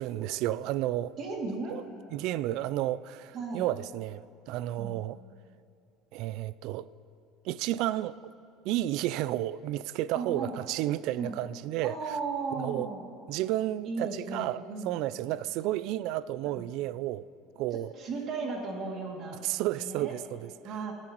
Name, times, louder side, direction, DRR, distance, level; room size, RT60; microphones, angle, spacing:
voice 1, 0.0-1.1 1.7-1.8 2.1-5.2 6.1-6.9 7.4-8.2 8.6-12.0 12.6-12.9 13.3-14.6 14.8-17.3 17.6-17.9 19.4-20.5, right 14 dB, 70° right, 0.3 m, -31 dB
voice 2, 1.2-1.8 3.3-3.7 4.8-5.0 10.1-10.5 11.2-11.3 11.8-13.1 13.8-14.9 16.4-16.7 17.7-19.4 19.7-20.1 20.6-20.9, right 4 dB, 50° right, 2.4 m, -36 dB
26.0 x 14.5 x 3.0 m
supercardioid pair, 95°, 0 cm